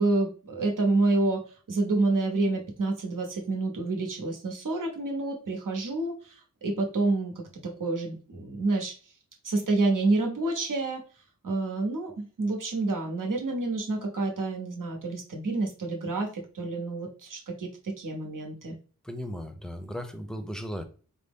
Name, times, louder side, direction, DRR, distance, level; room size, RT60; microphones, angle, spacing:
voice 1, 0.0-8.9 9.4-11.0 11.4-18.7, right 2 dB, 75° right, 1 dB, 0.9 m, -28 dB
voice 2, 19.0-20.8, equal, ahead, 7 dB, 0.6 m, -36 dB
4.0 x 2.0 x 3.6 m, 0.39 s
wide cardioid pair, 50°, 33 cm